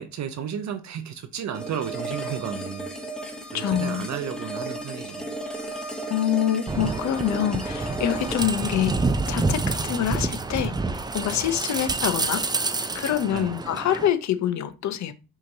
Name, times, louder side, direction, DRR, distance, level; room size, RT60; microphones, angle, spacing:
voice 1, 0.0-2.9 3.5-5.3 13.3-13.5, right 8 dB, 60° right, 0.6 m, -33 dB
sound 1, 1.5-10.6, right 2 dB, ahead, 0.9 m, -35 dB
voice 2, 3.5-4.1 6.1-9.0 9.3-10.8 11.1-12.7 12.9-15.1, left 10 dB, 60° left, 0.6 m, -26 dB
sound 2, 6.7-14.1, right 3 dB, 15° right, 0.4 m, -28 dB
5.5 x 2.9 x 2.7 m
cardioid pair, 75°, 33 cm